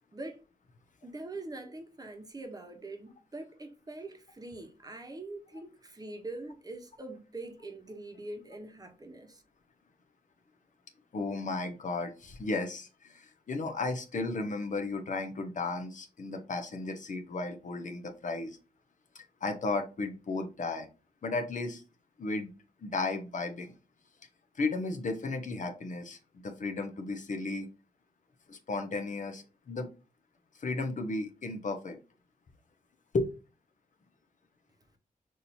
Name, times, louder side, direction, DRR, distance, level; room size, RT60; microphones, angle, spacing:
voice 1, 1.0-9.4, right 2 dB, 25° right, 1.1 m, -43 dB
voice 2, 11.1-18.6 19.1-20.9 21.2-21.8 22.2-22.5 22.8-23.7 24.5-27.7 28.5-29.9 30.5-32.0 33.1-33.3, left 3 dB, 55° left, 1.0 m, -34 dB
6.1 x 2.7 x 2.9 m
wide cardioid pair, 90°, 15 cm